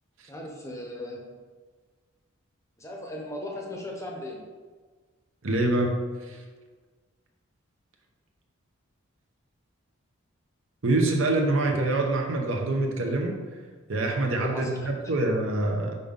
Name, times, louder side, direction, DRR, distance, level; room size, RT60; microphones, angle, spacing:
voice 1, 0.3-1.2 2.8-4.4 14.5-14.8, left 1 dB, 15° left, -1 dB, 0.8 m, -37 dB
voice 2, 5.4-5.9 6.2-6.4 10.8-13.3 13.9-16.0, right 2 dB, 65° right, 1 dB, 0.9 m, -25 dB
5.5 x 5.3 x 3.7 m, 1.4 s
head